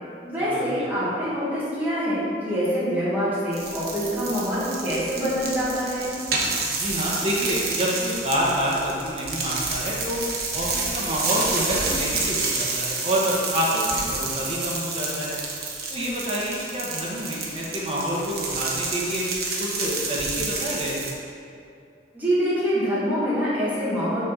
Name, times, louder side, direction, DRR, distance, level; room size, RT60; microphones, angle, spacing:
voice 1, 0.2-6.1 22.1-24.2, equal, 10° right, -11 dB, 1.8 m, -25 dB
sound 1, 3.5-21.1, right 3 dB, 60° right, 1.1 m, -29 dB
voice 2, 6.8-10.2 10.5-15.4 15.9-19.3 19.6-21.1, equal, 30° right, -5 dB, 1.4 m, -27 dB
6.3 x 6.3 x 4.2 m, 2.5 s
head